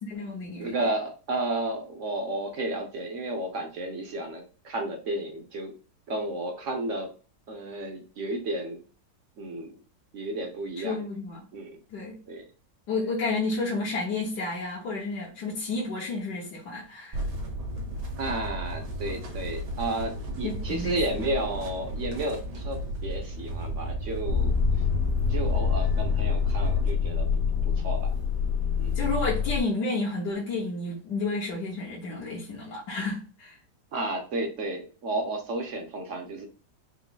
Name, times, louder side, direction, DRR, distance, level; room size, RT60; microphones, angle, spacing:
voice 1, 0.0-0.8 10.8-11.5 11.9-12.2 12.9-17.2 20.4-21.2 28.9-33.6, left 3 dB, 70° left, -6 dB, 1.7 m, -31 dB
voice 2, 0.6-5.7 6.1-7.1 7.5-8.8 9.4-9.7 10.1-11.0 11.5-11.8 12.3-12.5 18.2-24.5 25.3-28.1 28.8-29.0 33.9-36.5, right 2 dB, 55° right, 4 dB, 0.9 m, -32 dB
sound 1, 17.1-26.9, right 1 dB, 75° right, 1.8 m, -34 dB
Motor vehicle (road), 24.3-29.6, left 6 dB, 55° left, 1.1 m, -25 dB
4.7 x 2.1 x 3.8 m, 0.35 s
omnidirectional pair, 1.8 m